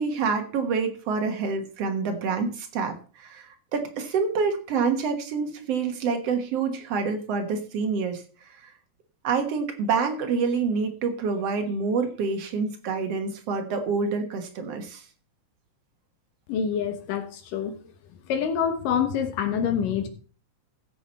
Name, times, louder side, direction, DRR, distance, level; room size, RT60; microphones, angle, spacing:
voice 1, 0.0-8.7 9.2-15.0, right 5 dB, 55° right, 5 dB, 2.1 m, -27 dB
voice 2, 16.5-17.8 18.3-20.1, left 7 dB, 85° left, 7 dB, 3.0 m, -26 dB
15.0 x 6.9 x 4.2 m, 0.40 s
omnidirectional pair, 3.7 m